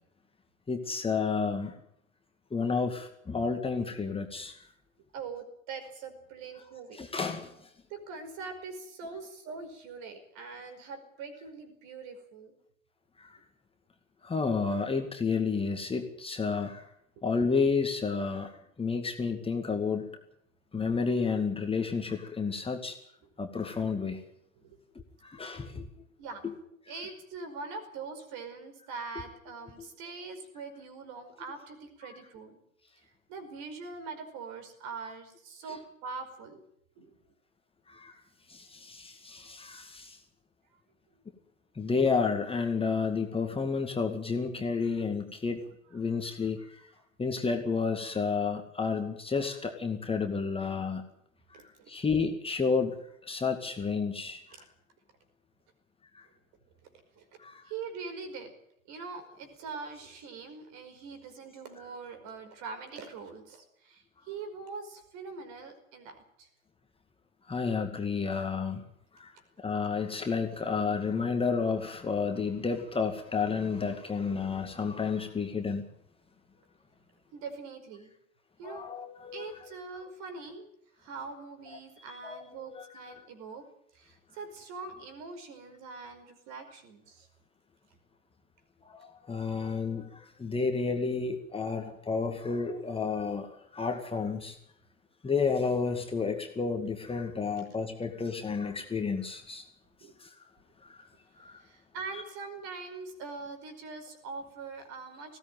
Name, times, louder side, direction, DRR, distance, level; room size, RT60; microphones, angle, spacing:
voice 1, 0.7-1.7 2.5-4.6 6.9-7.7 13.2-13.4 14.2-16.8 17.2-18.5 18.8-20.1 20.7-23.0 23.4-24.2 25.2-25.8 26.4-26.5 37.9-38.1 38.5-40.2 41.8-46.8 47.2-51.0 51.5-54.4 56.1-56.3 57.4-57.6 67.5-68.8 69.1-69.3 69.6-75.8 78.6-79.7 82.2-82.4 82.7-83.2 88.8-94.6 95.2-99.7 100.2-100.3 100.8-101.0 101.4-101.6, left 5 dB, 15° left, 4 dB, 2.2 m, -31 dB
voice 2, 5.1-7.0 7.9-12.6 13.3-13.4 24.5-24.8 26.2-26.4 26.9-32.6 33.0-36.6 37.0-37.1 45.9-46.0 46.3-46.7 51.5-51.9 54.5-54.6 57.2-57.3 57.6-58.5 58.9-66.5 77.3-78.1 78.6-78.8 79.3-80.7 81.0-83.6 83.9-87.3 100.0-100.1 101.6-105.4, right 4 dB, 45° right, 8 dB, 5.2 m, -43 dB
20.0 x 16.5 x 9.4 m, 0.73 s
figure-of-eight pair, 80°, 40 cm